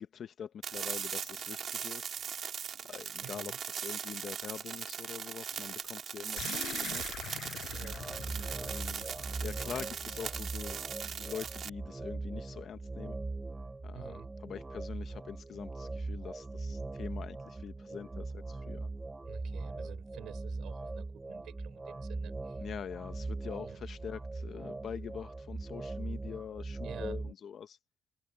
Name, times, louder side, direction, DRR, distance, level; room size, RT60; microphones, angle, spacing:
voice 1, 0.0-2.1 2.9-7.0 8.6-9.0 9.4-13.1 13.8-18.9 22.6-27.8, left 8 dB, 60° left, 1.1 m, -44 dB
sound 1, 0.6-11.7, right 8 dB, 60° right, 2.9 m, -39 dB
voice 2, 3.2-3.6 7.7-8.0 13.9-14.3 19.3-22.5 23.6-23.8 26.8-27.2, right 12 dB, 80° right, 4.6 m, -50 dB
sound 2, 6.4-11.0, left 13 dB, 85° left, 5.3 m, -45 dB
sound 3, 7.7-27.3, right 3 dB, 20° right, 0.6 m, -40 dB
cardioid pair, 90°, 0 cm